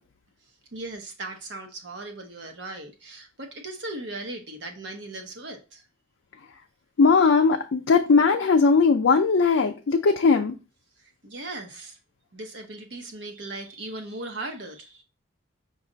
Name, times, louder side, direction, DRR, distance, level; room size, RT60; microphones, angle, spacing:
voice 1, 0.7-5.8 11.2-12.0 12.3-15.0, right 2 dB, 65° right, 0.9 m, -38 dB
voice 2, 7.0-10.6, left 4 dB, 80° left, 0.4 m, -19 dB
5.2 x 2.4 x 3.8 m
head